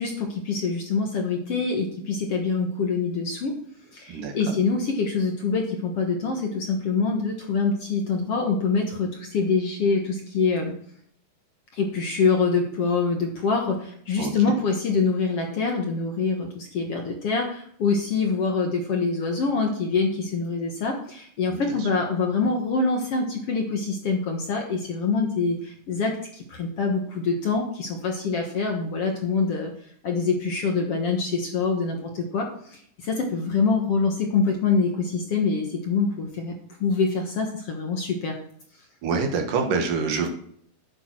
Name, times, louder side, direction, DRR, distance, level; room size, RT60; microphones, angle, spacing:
voice 1, 0.0-3.5 3.9-10.7 11.7-29.7 30.0-36.5 36.8-38.4, left 4 dB, 55° left, 2 dB, 1.8 m, -25 dB
voice 2, 4.1-4.6 14.2-14.6 21.5-21.9 39.0-40.3, right 5 dB, 70° right, 4 dB, 3.0 m, -27 dB
12.0 x 9.1 x 4.5 m, 0.64 s
omnidirectional pair, 4.0 m